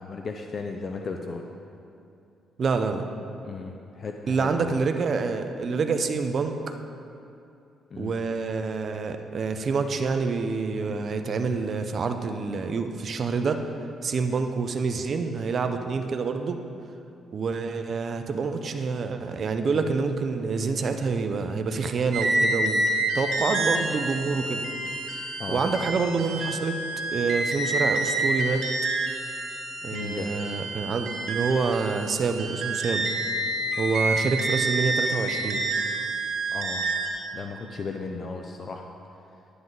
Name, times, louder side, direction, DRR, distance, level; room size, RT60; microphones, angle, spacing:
voice 1, 0.0-1.4 3.4-4.7 7.9-8.1 25.4-25.9 29.9-30.4 36.5-37.0 37.3-38.9, left 4 dB, 45° left, 3 dB, 0.6 m, -35 dB
voice 2, 2.6-3.0 4.3-6.7 8.0-13.6 14.0-16.6 17.3-24.6 25.5-26.8 27.1-28.6 29.8-33.1 33.8-35.6, right 4 dB, 50° right, 6 dB, 0.7 m, -27 dB
sound 1, 22.1-37.1, right 2 dB, 80° right, 1.8 m, -28 dB
11.0 x 9.5 x 4.0 m, 2.7 s
cardioid pair, 90°, 0 cm